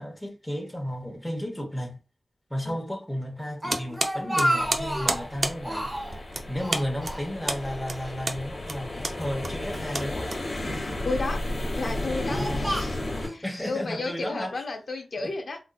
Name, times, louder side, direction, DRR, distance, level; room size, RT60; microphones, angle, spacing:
voice 1, 0.0-2.0 2.5-5.9 6.5-10.3 10.6-10.7 13.4-14.5, equal, 5° left, 1.0 m, -33 dB
Speech, 3.4-5.3 5.6-6.2 6.6-7.7 8.0-8.1 8.9-9.9 10.6-11.1 11.7-13.4, equal, 15° right, 0.7 m, -31 dB
sound 1, 3.7-10.9, right 2 dB, 50° right, 0.5 m, -32 dB
sound 2, 4.6-13.3, left 1 dB, 40° left, 1.0 m, -33 dB
voice 2, 11.0-11.4 11.8-13.0 13.3-15.6, left 3 dB, 65° left, 0.5 m, -32 dB
3.7 x 2.6 x 2.3 m
wide cardioid pair, 110°, 0 cm